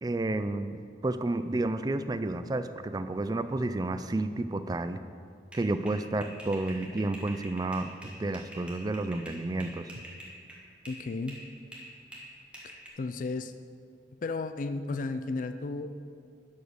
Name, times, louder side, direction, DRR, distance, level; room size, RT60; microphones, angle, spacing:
voice 1, 0.0-5.0 5.5-9.9, right 2 dB, 20° right, 11 dB, 0.4 m, -31 dB
sound 1, 5.5-11.0 11.3-12.9, equal, 5° right, 1.4 m, -46 dB
voice 2, 10.9-11.4 12.6-13.5 14.2-15.9, left 3 dB, 50° left, 10 dB, 0.4 m, -34 dB
11.5 x 5.1 x 6.3 m, 2.3 s
head